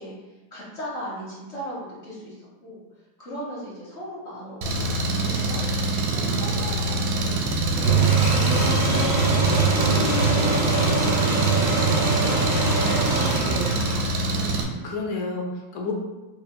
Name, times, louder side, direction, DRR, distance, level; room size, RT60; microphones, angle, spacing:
voice 1, 0.0-2.8 3.2-5.6 6.0-11.7, equal, 40° left, -6 dB, 1.1 m, -39 dB
Engine, 4.6-14.6, right 2 dB, 75° right, 1.4 m, -25 dB
voice 2, 6.2-6.6 14.4-15.9, left 3 dB, 65° left, -1 dB, 1.1 m, -32 dB
sound 1, 7.8-14.4, right 3 dB, 40° right, 1.7 m, -22 dB
4.9 x 3.4 x 2.2 m, 1.1 s
omnidirectional pair, 2.2 m